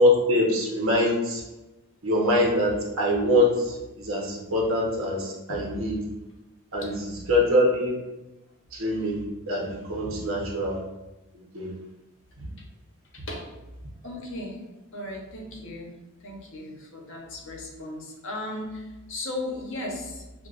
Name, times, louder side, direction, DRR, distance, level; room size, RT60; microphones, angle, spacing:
voice 1, 0.0-1.4 2.0-6.0 6.7-6.9 7.3-7.9 8.7-10.8 11.5-11.7 12.4-12.5, left 1 dB, 65° right, -2 dB, 1.0 m, -24 dB
voice 2, 6.8-7.3 12.6-12.7 13.3-13.5 14.0-14.7 14.9-15.9 16.2-20.5, left 1 dB, 60° left, 0 dB, 0.9 m, -36 dB
6.6 x 2.3 x 2.5 m, 1.0 s
head